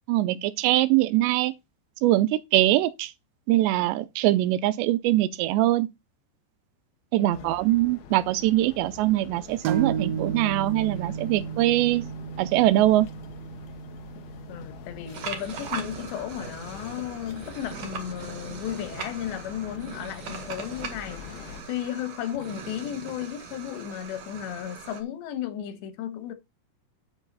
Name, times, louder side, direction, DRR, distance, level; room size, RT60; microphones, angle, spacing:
voice 1, 0.1-1.5 2.0-3.1 3.5-5.9 7.1-12.1 12.4-13.1, right 15 dB, 90° right, 2.9 m, -22 dB
voice 2, 7.1-7.5 14.5-21.3 21.7-26.3, left 10 dB, 90° left, 3.5 m, -34 dB
sound 1, 7.3-21.6, left 8 dB, 70° left, 2.7 m, -45 dB
sound 2, 9.6-17.1, right 7 dB, 70° right, 2.3 m, -34 dB
sound 3, 15.1-25.0, right 6 dB, 50° right, 2.2 m, -40 dB
11.0 x 5.7 x 4.0 m
omnidirectional pair, 4.9 m